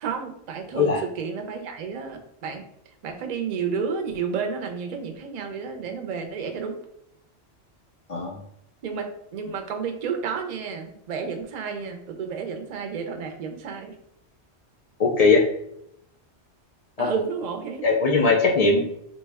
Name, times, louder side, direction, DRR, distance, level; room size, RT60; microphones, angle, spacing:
voice 1, 0.0-2.6 3.0-6.8 8.8-9.1 9.3-13.9 17.0-17.8, right 6 dB, 55° right, 4 dB, 0.5 m, -31 dB
voice 2, 8.1-8.4 15.0-15.5 17.0-17.1 17.8-18.9, left 4 dB, 60° left, 2 dB, 0.4 m, -20 dB
3.3 x 2.1 x 3.3 m, 0.75 s
omnidirectional pair, 1.1 m